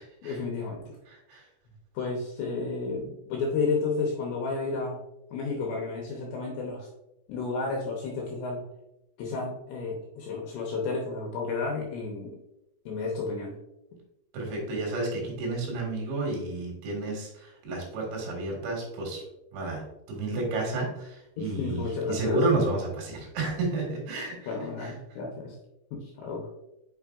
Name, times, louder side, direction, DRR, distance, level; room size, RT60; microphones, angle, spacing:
voice 1, 0.2-1.0 1.9-5.0 5.3-6.9 7.3-8.6 9.2-12.4 12.9-13.6 21.4-22.4 24.5-25.6 25.9-26.5, left 4 dB, 75° left, 0 dB, 2.7 m, -32 dB
voice 2, 14.3-19.2 19.5-19.8 20.1-24.4 24.8-24.9, right 2 dB, 70° right, -1 dB, 4.0 m, -31 dB
8.7 x 5.4 x 2.4 m, 0.88 s
omnidirectional pair, 5.7 m